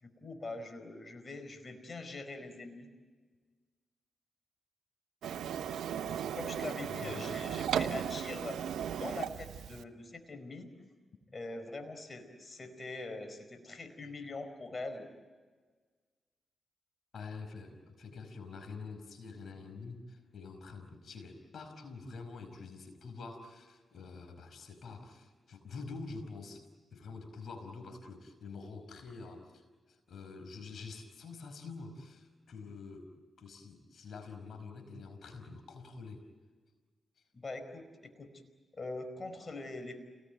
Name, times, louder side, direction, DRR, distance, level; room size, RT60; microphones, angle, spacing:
voice 1, 0.0-2.9 6.3-8.6 8.9-10.7 11.3-15.1 37.4-38.3 38.7-40.0, left 2 dB, 40° left, 8 dB, 4.7 m, -43 dB
Printer, 5.2-9.8, right 9 dB, 90° right, 0.9 m, -36 dB
voice 2, 6.9-7.4 17.1-36.2, left 4 dB, 70° left, 7 dB, 5.1 m, -47 dB
29.0 x 19.0 x 9.3 m, 1.5 s
cardioid pair, 55°, 0 cm